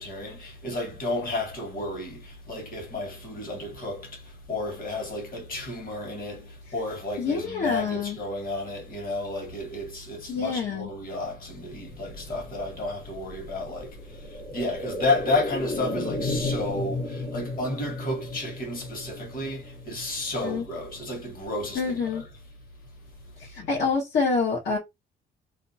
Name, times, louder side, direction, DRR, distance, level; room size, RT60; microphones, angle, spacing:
voice 1, 0.0-22.2, left 2 dB, 45° left, 1.4 m, -32 dB
voice 2, 7.2-8.2 10.3-10.9 20.4-20.6 21.7-22.2 23.4-24.8, left 4 dB, 65° left, 1.0 m, -27 dB
sound 1, 11.4-21.2 21.5-21.6, left 2 dB, 90° left, 1.1 m, -35 dB
2.7 x 2.2 x 2.7 m
cardioid pair, 90°, 20 cm